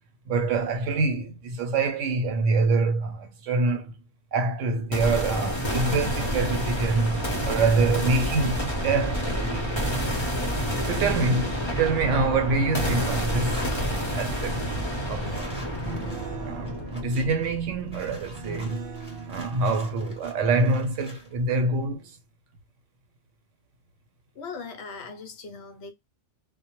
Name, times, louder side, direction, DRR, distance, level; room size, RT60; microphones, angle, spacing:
voice 1, 0.3-3.9 4.3-10.1 10.9-14.8 15.1-15.5 16.4-18.8 19.3-22.1, right 3 dB, 80° right, 1.0 m, -26 dB
sound 1, 4.9-18.9, equal, 30° left, 0.6 m, -29 dB
sound 2, 11.0-13.7 14.4-21.4 21.7-22.1, right 3 dB, 55° right, 0.7 m, -41 dB
sound 3, 12.4-12.6 12.9-21.3, left 1 dB, 5° right, 0.7 m, -47 dB
voice 2, 24.3-25.9, left 4 dB, 65° left, 0.8 m, -39 dB
2.1 x 2.1 x 2.9 m
omnidirectional pair, 1.3 m